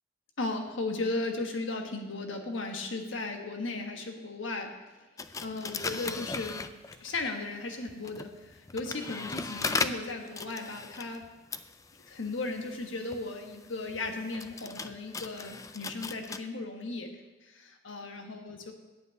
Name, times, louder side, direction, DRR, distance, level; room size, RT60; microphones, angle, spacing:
voice 1, 0.4-4.7 5.4-6.6 7.0-11.2 12.1-17.1 17.4-18.7, left 2 dB, 90° left, 4 dB, 1.3 m, -36 dB
sound 1, 5.2-7.2 7.9-16.4, left 4 dB, 15° left, 0.3 m, -38 dB
9.4 x 5.7 x 8.0 m, 1.2 s
head